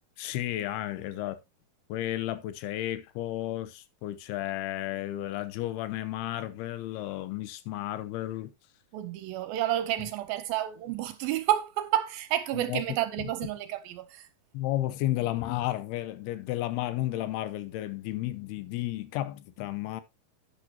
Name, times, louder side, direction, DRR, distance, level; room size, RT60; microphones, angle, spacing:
voice 1, 0.2-1.4 1.9-8.5 12.5-12.8 13.2-13.3 14.5-20.0, left 14 dB, 85° left, 2.8 m, -33 dB
voice 2, 8.9-14.3, right 13 dB, 80° right, 2.4 m, -30 dB
11.5 x 9.1 x 2.8 m
omnidirectional pair, 4.5 m